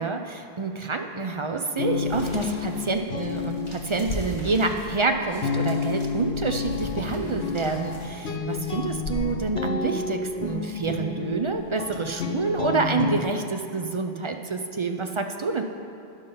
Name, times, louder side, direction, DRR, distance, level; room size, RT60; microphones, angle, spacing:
voice 1, 0.0-15.6, right 4 dB, 50° right, 5 dB, 0.3 m, -28 dB
sound 1, 1.8-13.2, left 5 dB, 85° left, 1.1 m, -30 dB
sound 2, 2.0-8.1, equal, 60° left, 2.1 m, -40 dB
12.0 x 5.4 x 5.4 m, 2.5 s
omnidirectional pair, 1.0 m